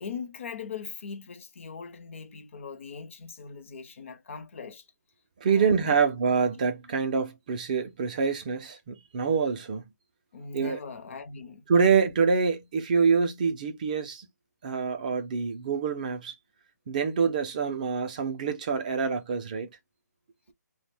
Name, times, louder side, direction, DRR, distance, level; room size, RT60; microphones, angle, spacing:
voice 1, 0.0-4.9 5.4-5.9 10.3-11.7, left 5 dB, 45° left, 0.6 m, -40 dB
voice 2, 5.4-9.8 10.5-10.8 11.7-14.3 14.6-16.3 16.9-19.7, right 5 dB, 25° right, 0.4 m, -26 dB
2.4 x 2.1 x 3.3 m
hypercardioid pair, 165°, 9 cm